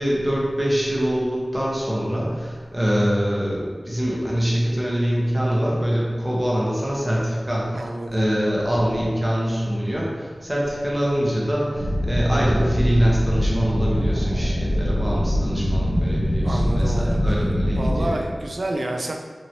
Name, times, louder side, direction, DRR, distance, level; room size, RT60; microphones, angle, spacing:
voice 1, 0.0-7.8 8.1-18.3, equal, 20° right, -5 dB, 0.9 m, -24 dB
voice 2, 7.7-8.2 16.4-17.4 17.7-19.1, right 1 dB, 65° right, 2 dB, 0.4 m, -29 dB
sound 1, 11.7-18.1, equal, 45° left, 1.4 m, -23 dB
2.9 x 2.7 x 2.8 m, 1.5 s
cardioid pair, 45°, 0 cm